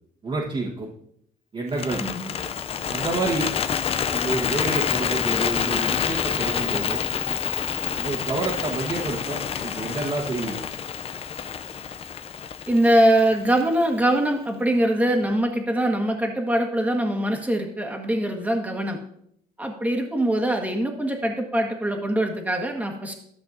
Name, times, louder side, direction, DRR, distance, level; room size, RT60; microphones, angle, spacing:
voice 1, 0.2-0.9 1.5-2.1 2.9-3.5 4.1-7.0 7.9-10.7, right 3 dB, 30° right, -4 dB, 1.4 m, -28 dB
Bird, 1.7-13.9, left 7 dB, 35° left, 0.5 m, -28 dB
voice 2, 2.0-2.3 12.7-19.0 19.6-23.1, right 1 dB, 10° right, 2 dB, 1.6 m, -23 dB
13.5 x 6.6 x 2.7 m, 0.72 s
cardioid pair, 110°, 17 cm